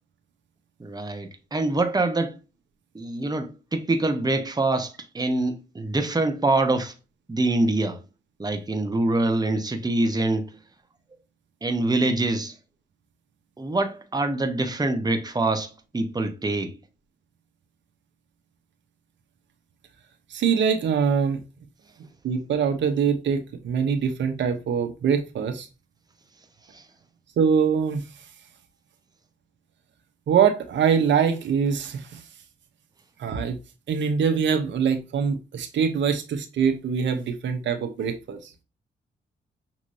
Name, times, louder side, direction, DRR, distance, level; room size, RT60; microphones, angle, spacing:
voice 1, 0.8-2.4 2.9-6.9 7.3-8.0 8.4-10.6 11.6-12.5 13.6-16.8 26.7-26.8, right 2 dB, 20° right, 1.0 m, -25 dB
voice 2, 20.3-21.4 22.2-25.7 27.4-28.0 30.3-32.2 33.2-33.6 33.9-38.5, right 7 dB, 75° right, 0.9 m, -23 dB
6.3 x 3.0 x 2.7 m
supercardioid pair, 55°, 19 cm